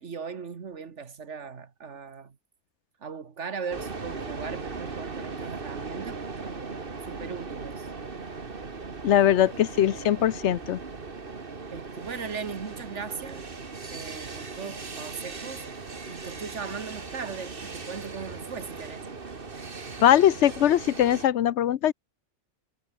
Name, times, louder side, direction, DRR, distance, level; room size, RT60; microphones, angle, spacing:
voice 1, 0.0-2.4 3.0-6.6 7.0-7.9 11.7-13.5 13.9-15.7 16.1-19.1, right 6 dB, 75° right, 1.9 m, -38 dB
sound 1, 3.7-21.3, right 4 dB, 50° right, 2.0 m, -38 dB
voice 2, 9.0-10.8 20.0-21.9, left 11 dB, 75° left, 1.0 m, -21 dB
omnidirectional pair, 1.2 m